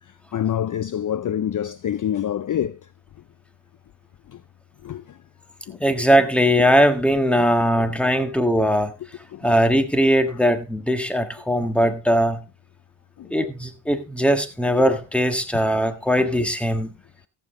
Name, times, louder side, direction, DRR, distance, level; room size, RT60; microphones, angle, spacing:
voice 1, 0.3-2.8 4.8-5.2 5.7-5.8 7.8-7.9 8.2-8.3 9.3-9.5 13.2-13.3 16.2-16.3, left 10 dB, 45° left, 0.6 m, -26 dB
voice 2, 5.8-8.9 9.4-12.4 13.3-16.9, equal, 5° left, 1.5 m, -20 dB
14.5 x 7.8 x 3.7 m
cardioid pair, 75°, 46 cm